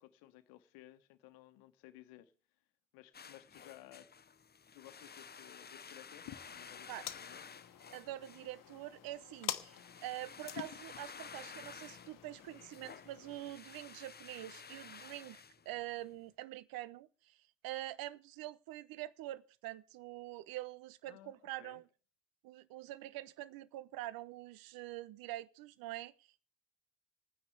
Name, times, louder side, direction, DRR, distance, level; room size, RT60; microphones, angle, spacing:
voice 1, 0.0-2.3 2.9-4.1 4.7-6.3 6.5-7.5 21.1-21.8, left 15 dB, 80° left, 1.2 m, -57 dB
sound 1, 3.1-16.2, left 6 dB, 25° left, 0.8 m, -53 dB
sound 2, 6.2-13.5, left 12 dB, 60° left, 1.2 m, -48 dB
voice 2, 7.9-21.8 22.4-26.4, right 15 dB, 75° right, 0.8 m, -45 dB
27.0 x 9.8 x 3.4 m
hypercardioid pair, 45°, 36 cm